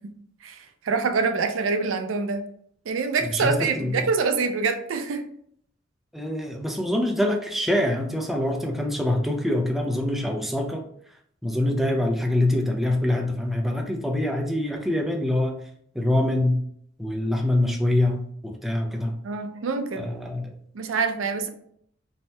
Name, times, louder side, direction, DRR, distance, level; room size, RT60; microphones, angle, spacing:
voice 1, 0.4-2.4 2.9-5.2 19.2-20.1 20.7-21.5, right 4 dB, 80° right, 7 dB, 0.4 m, -25 dB
voice 2, 3.2-4.1 6.1-10.8 11.4-15.6 15.9-16.6 17.0-19.2 20.0-20.5, left 1 dB, ahead, 1 dB, 0.3 m, -25 dB
2.7 x 2.1 x 3.1 m, 0.65 s
head